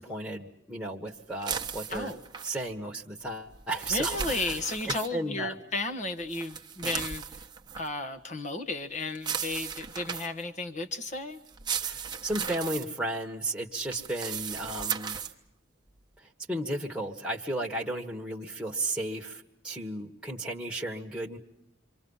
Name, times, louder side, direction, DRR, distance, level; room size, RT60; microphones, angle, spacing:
voice 1, 0.0-2.1 2.4-4.5 4.9-5.5 11.8-15.2 16.2-21.4, right 1 dB, 5° right, 0 dB, 1.6 m, -34 dB
sound 1, 1.4-2.6 3.5-5.1 6.3-7.9 9.1-10.4 11.5-12.8 13.8-15.3, right 7 dB, 20° right, 1.1 m, -35 dB
voice 2, 3.9-7.2 7.8-11.4, left 3 dB, 40° left, 7 dB, 1.5 m, -34 dB
28.0 x 24.5 x 5.6 m, 0.77 s
head